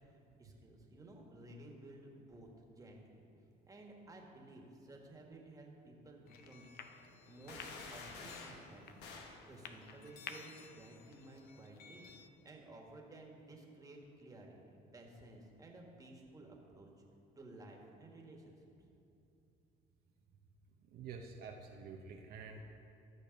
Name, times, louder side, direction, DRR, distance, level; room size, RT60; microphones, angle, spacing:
voice 1, 0.0-2.5 2.7-3.2 3.7-6.7 7.2-9.1 9.5-16.9 17.3-18.6, right 2 dB, 20° right, 0 dB, 1.7 m, -55 dB
sound 1, 6.3-12.3, left 7 dB, 65° left, 0.7 m, -54 dB
sound 2, 7.5-8.6 9.0-9.4, left 4 dB, 85° left, 1.3 m, -49 dB
voice 2, 20.8-22.6, right 5 dB, 65° right, 2 dB, 0.8 m, -49 dB
12.5 x 6.9 x 5.2 m, 2.8 s
cardioid pair, 110°, 17 cm